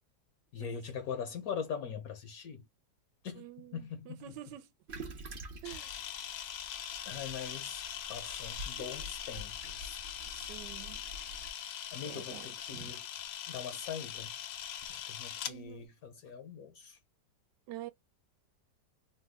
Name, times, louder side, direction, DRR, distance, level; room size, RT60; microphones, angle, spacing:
voice 1, 0.5-2.7 3.2-4.4 7.1-7.8 8.1-10.0 11.9-13.0 13.5-14.3 14.9-17.0, left 7 dB, 65° left, 1.1 m, -42 dB
voice 2, 3.4-4.7 5.6-5.9 10.3-11.0 12.1-12.4 12.7-12.9 15.5-15.9 17.7-17.9, right 13 dB, 80° right, 1.3 m, -47 dB
Toilet flush, 4.9-11.5, right 1 dB, 45° right, 0.7 m, -48 dB
Camera, 5.6-15.5, left 10 dB, 90° left, 1.4 m, -42 dB
3.2 x 2.2 x 3.3 m
omnidirectional pair, 1.9 m